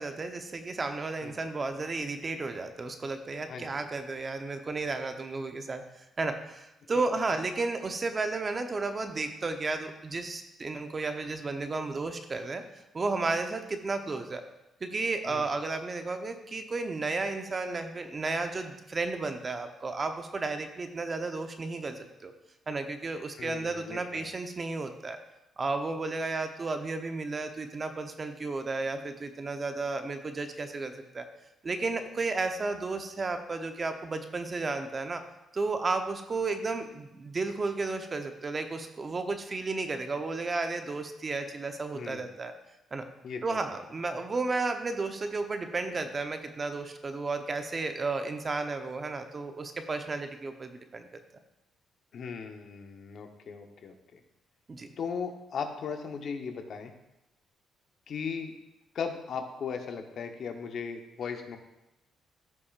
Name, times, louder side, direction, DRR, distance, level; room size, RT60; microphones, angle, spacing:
voice 1, 0.0-5.8 6.2-12.6 12.9-14.4 14.8-22.3 22.7-25.2 25.6-31.2 31.6-35.2 35.5-42.5 42.9-43.1 43.4-51.1 54.7-54.9, right 3 dB, 35° right, 6 dB, 0.8 m, -33 dB
voice 2, 3.5-3.8 15.3-15.5 23.4-24.3 41.9-42.3 43.2-43.6 52.1-54.2 55.0-56.9 58.1-58.5 58.9-61.6, left 6 dB, 60° left, 5 dB, 1.0 m, -37 dB
14.0 x 5.8 x 2.5 m, 0.92 s
cardioid pair, 90°, 0 cm